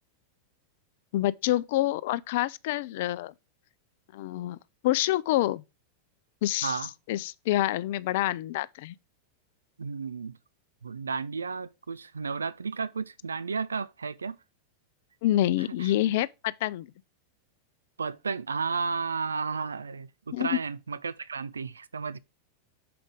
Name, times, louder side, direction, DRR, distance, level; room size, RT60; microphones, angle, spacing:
voice 1, 1.1-3.3 4.1-4.6 4.8-5.6 6.4-6.8 7.1-8.9 15.2-16.9 20.3-20.6, left 14 dB, 50° left, 0.3 m, -27 dB
voice 2, 9.8-10.4 10.8-14.4 15.8-15.9 18.0-22.2, right 5 dB, 75° right, 0.4 m, -33 dB
6.8 x 5.0 x 3.4 m
figure-of-eight pair, 90°, 0 cm